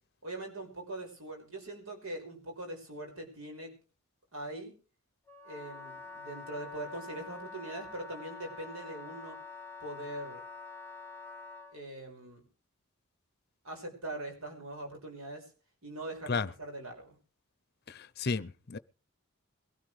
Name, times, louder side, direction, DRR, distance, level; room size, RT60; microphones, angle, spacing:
voice 1, 0.2-3.7 4.3-4.8 5.4-9.4 9.8-10.4 11.7-12.5 13.6-15.5 15.8-17.2, right 1 dB, 75° right, 5.8 m, -42 dB
Wind instrument woodwind instrument, 5.3-11.8, left 4 dB, 10° left, 0.9 m, -46 dB
voice 2, 17.9-18.8, left 4 dB, 45° left, 0.6 m, -33 dB
22.0 x 13.0 x 3.3 m
head